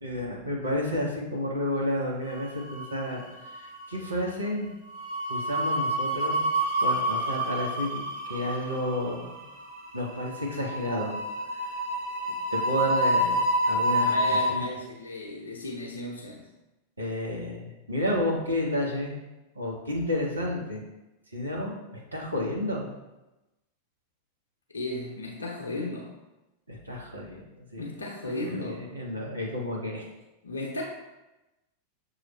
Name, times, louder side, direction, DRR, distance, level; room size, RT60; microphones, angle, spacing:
voice 1, 0.0-3.2 3.5-4.7 5.3-6.4 6.8-9.4 9.9-11.2 11.6-11.7 12.5-14.6 17.0-19.1 19.5-20.8 21.3-22.9 26.7-27.9 28.5-30.0, left 1 dB, 80° right, -2 dB, 0.9 m, -31 dB
sound 1, 2.4-3.2 3.5-3.7 4.9-14.5, right 1 dB, 60° right, 1.4 m, -28 dB
voice 2, 14.0-16.5 24.7-26.1 27.8-28.8 30.4-30.8, left 2 dB, 75° left, -2 dB, 0.6 m, -35 dB
6.2 x 2.4 x 3.1 m, 1.0 s
figure-of-eight pair, 90°, 0 cm